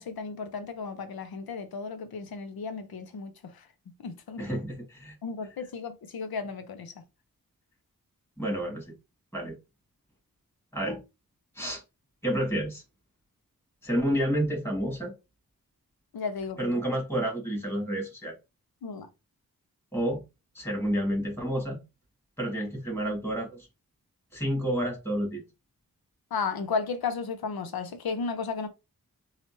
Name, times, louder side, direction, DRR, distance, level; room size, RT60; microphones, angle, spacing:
voice 1, 0.0-3.7 4.0-4.5 5.2-6.9 16.1-16.7 18.8-19.1 26.3-28.7, left 5 dB, 90° left, 0.6 m, -34 dB
voice 2, 4.4-5.2 8.4-8.9 9.3-9.6 10.7-11.0 11.6-11.8 12.2-12.8 13.8-15.1 16.6-18.3 19.9-20.2 20.5-21.8 22.4-23.7 24.3-25.4, equal, 5° left, 2.2 m, -29 dB
4.2 x 2.4 x 2.9 m
cardioid pair, 40°, 35 cm